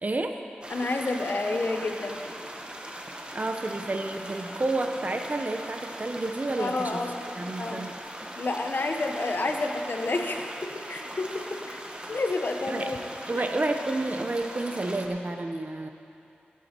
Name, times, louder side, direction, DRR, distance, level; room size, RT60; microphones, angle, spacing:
voice 1, 0.0-0.4 3.3-7.0 7.3-7.9 12.7-13.0 13.3-15.9, right 2 dB, 45° right, 6 dB, 0.8 m, -30 dB
sound 1, 0.6-15.1, right 1 dB, 25° right, 1.2 m, -40 dB
voice 2, 0.7-2.2 6.6-7.2 7.6-7.8 8.3-10.5 10.9-11.2 11.7-11.8 12.1-13.0 13.3-13.4, left 2 dB, 60° left, 4 dB, 1.0 m, -29 dB
16.5 x 8.3 x 4.5 m, 2.6 s
wide cardioid pair, 55°, 4 cm